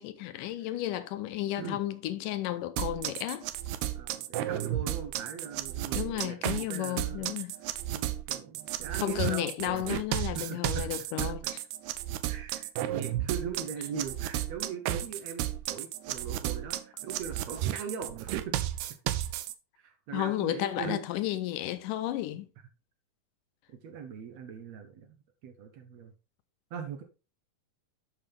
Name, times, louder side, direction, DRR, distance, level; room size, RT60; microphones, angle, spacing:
voice 1, 0.0-3.5 5.9-7.6 9.0-11.4 20.1-22.5, left 14 dB, 80° left, 2.1 m, -33 dB
sound 1, 2.8-19.5, right 13 dB, 85° right, 1.7 m, -33 dB
voice 2, 3.9-7.3 7.9-9.9 10.3-10.8 11.2-11.3 12.2-18.6 19.8-21.0 23.8-25.2 25.4-26.1 26.7-27.0, right 6 dB, 70° right, 1.7 m, -40 dB
11.0 x 5.7 x 3.4 m
omnidirectional pair, 3.9 m